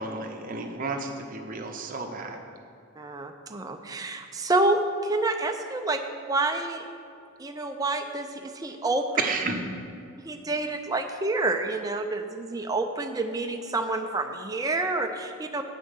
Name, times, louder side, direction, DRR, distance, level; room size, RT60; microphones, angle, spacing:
voice 1, 0.0-2.4 9.2-9.6, right 3 dB, 40° right, 3 dB, 0.8 m, -31 dB
voice 2, 3.0-6.9 7.4-9.1 10.2-15.6, right 2 dB, 15° right, 4 dB, 0.5 m, -28 dB
9.0 x 5.6 x 6.4 m, 2.4 s
head